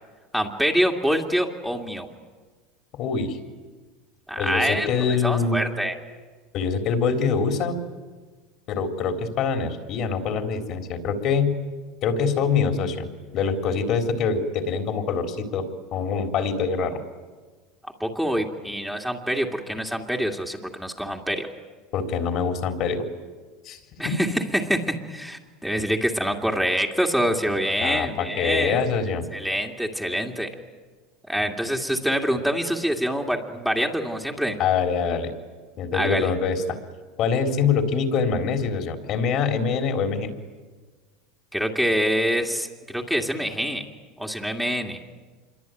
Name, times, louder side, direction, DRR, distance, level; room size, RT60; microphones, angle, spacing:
voice 1, 0.3-2.1 4.3-6.0 18.0-21.5 24.0-24.3 24.5-28.8 29.3-30.5 31.3-34.6 35.9-36.3 41.5-43.9 44.2-45.0, equal, ahead, 1 dB, 2.4 m, -25 dB
voice 2, 2.9-3.4 4.4-5.6 6.5-7.8 8.7-11.5 12.0-13.1 13.3-15.6 15.9-17.0 21.9-23.0 23.7-23.8 24.0-24.2 27.8-29.2 34.6-35.3 35.8-36.6 37.2-40.3, left 5 dB, 50° left, 6 dB, 3.8 m, -24 dB
26.5 x 23.0 x 9.3 m, 1.4 s
supercardioid pair, 115°, 0 cm